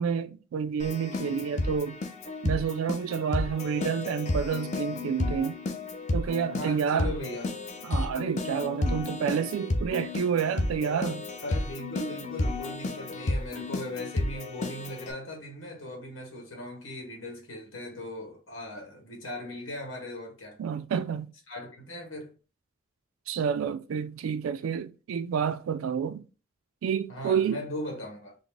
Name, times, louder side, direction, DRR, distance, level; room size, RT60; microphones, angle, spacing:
voice 1, 0.0-2.0 2.4-5.6 6.1-7.1 7.8-11.2 20.6-21.3 23.3-26.3 26.8-27.6, right 7 dB, 85° right, 0.3 m, -29 dB
Keyboard (musical), 0.8-15.1, left 2 dB, 35° left, 0.4 m, -32 dB
voice 2, 6.5-7.6 11.4-20.6 21.5-22.3 27.1-28.4, left 1 dB, 70° left, 1.3 m, -38 dB
3.9 x 2.0 x 3.3 m
head